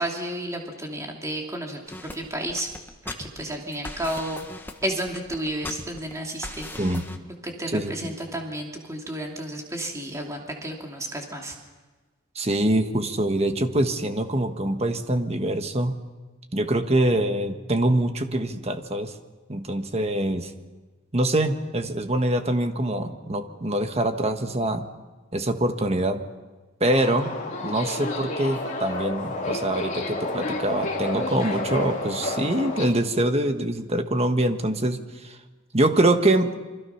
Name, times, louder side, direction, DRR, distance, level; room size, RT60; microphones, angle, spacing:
voice 1, 0.0-2.7 3.2-4.4 4.8-6.9 7.4-11.5, right 1 dB, 15° right, 0 dB, 2.8 m, -32 dB
sound 1, 1.9-7.2, left 2 dB, 10° left, 1.4 m, -39 dB
voice 2, 7.7-8.1 12.3-15.9 16.5-19.1 19.5-20.5 21.1-24.9 25.3-26.2 26.8-27.3 27.6-35.0 35.2-35.4 35.7-36.5, right 1 dB, 30° right, 7 dB, 1.4 m, -24 dB
Subway metro underground, 26.9-32.8, left 2 dB, 35° left, 3.8 m, -30 dB
28.0 x 24.5 x 5.8 m, 1.2 s
head